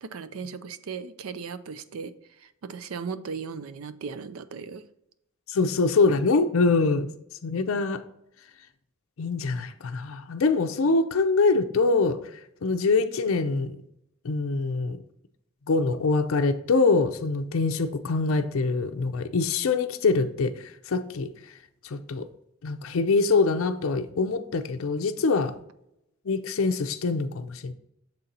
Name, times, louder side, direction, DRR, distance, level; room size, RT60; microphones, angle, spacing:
voice 1, 0.0-4.8, right 5 dB, 80° right, 0.5 m, -37 dB
voice 2, 5.5-7.1 7.4-8.0 9.2-12.2 12.6-13.8 14.2-15.0 15.7-21.3 21.8-22.3 22.6-25.6 26.3-27.7, left 3 dB, 70° left, 0.5 m, -24 dB
6.7 x 4.2 x 3.9 m
head